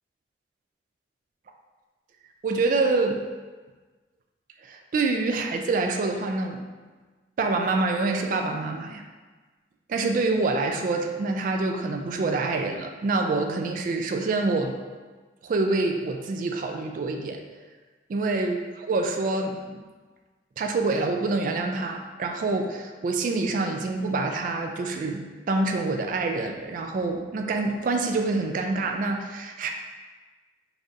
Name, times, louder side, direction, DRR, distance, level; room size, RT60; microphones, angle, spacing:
voice 1, 2.4-3.2 4.6-6.6 7.4-9.0 9.9-14.8 15.4-17.4 18.1-19.8 20.6-29.7, right 3 dB, 50° right, 4 dB, 0.3 m, -26 dB
3.7 x 3.3 x 2.6 m, 1.3 s
head